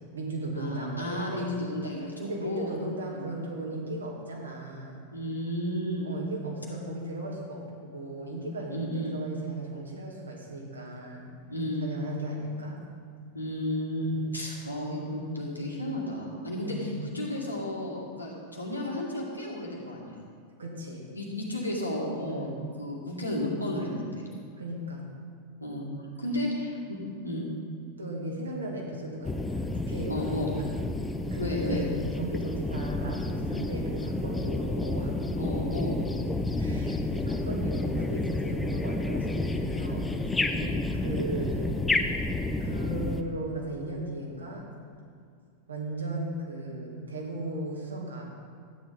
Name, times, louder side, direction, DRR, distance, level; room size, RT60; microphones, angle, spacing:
voice 1, 0.0-1.6 2.2-5.0 6.0-11.3 11.8-12.8 14.1-14.3 16.6-17.0 20.6-21.1 22.3-22.5 24.6-25.1 28.0-30.7 31.3-35.2 36.6-40.6 40.9-42.3 42.6-44.7 45.7-48.3, right 1 dB, 75° right, -2 dB, 2.3 m, -36 dB
voice 2, 0.5-2.7 3.1-3.3 5.1-6.2 8.7-9.2 11.5-11.9 13.3-20.2 21.1-24.3 25.6-25.9 26.2-27.5 30.1-30.5 31.4-31.9 35.4-36.0 40.5-40.8, left 1 dB, 85° left, -3 dB, 2.2 m, -33 dB
sound 1, 29.2-43.2, left 2 dB, 10° left, 0.6 m, -30 dB
13.0 x 9.5 x 4.2 m, 2.3 s
figure-of-eight pair, 90°, 0 cm